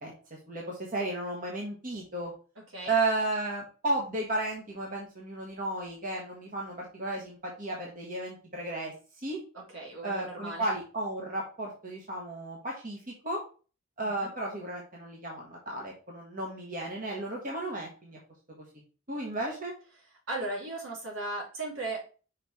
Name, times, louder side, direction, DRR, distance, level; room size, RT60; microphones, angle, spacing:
voice 1, 0.0-2.3 2.8-8.9 9.2-9.4 10.0-13.4 14.0-18.2 18.6-18.7 19.1-19.7, right 2 dB, 40° right, -1 dB, 1.3 m, -34 dB
voice 2, 9.5-10.7 14.0-14.3 20.3-22.0, right 2 dB, 75° right, -2 dB, 2.9 m, -36 dB
5.7 x 4.7 x 4.2 m, 0.37 s
head